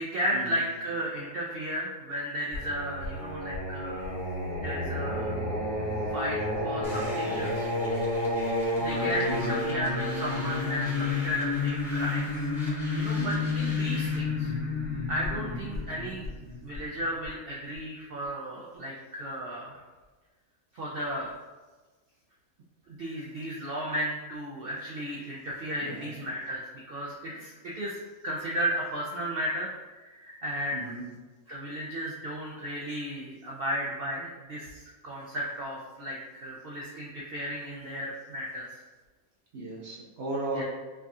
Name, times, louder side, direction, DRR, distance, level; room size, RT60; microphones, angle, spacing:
voice 1, 0.0-4.2 4.6-5.3 6.1-7.7 8.7-12.3 12.6-14.6 15.1-16.2 16.6-19.8 20.7-21.3 22.9-26.6 26.9-28.0 28.2-31.0 31.5-38.7 40.5-40.6, equal, 75° right, -4 dB, 0.5 m, -34 dB
Singing, 2.5-17.3, left 2 dB, 50° left, 1.4 m, -30 dB
sound 1, 6.8-14.2, equal, ahead, 0.7 m, -45 dB
voice 2, 30.7-31.0 39.5-40.6, right 2 dB, 55° right, -5 dB, 1.0 m, -35 dB
4.6 x 2.3 x 2.6 m, 1.3 s
omnidirectional pair, 1.5 m